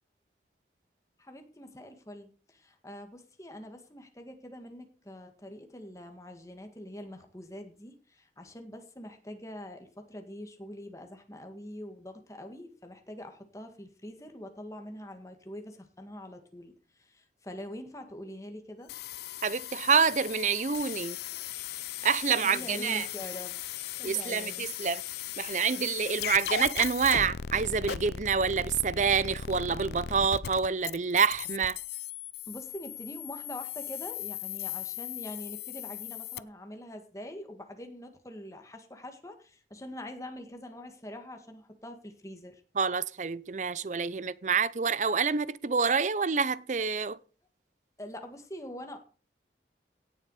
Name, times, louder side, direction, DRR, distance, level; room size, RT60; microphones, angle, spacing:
voice 1, 1.2-16.7 17.0-18.9 22.4-23.6 24.0-24.7 25.7-25.9 32.5-42.6 48.0-49.0, left 1 dB, 20° left, 1.9 m, -44 dB
sound 1, 18.9-36.4, left 9 dB, 65° left, 0.5 m, -38 dB
voice 2, 19.4-21.2 22.0-23.1 24.0-25.0 25.4-31.8 42.8-47.2, right 6 dB, 45° right, 0.5 m, -27 dB
17.0 x 7.1 x 4.8 m
head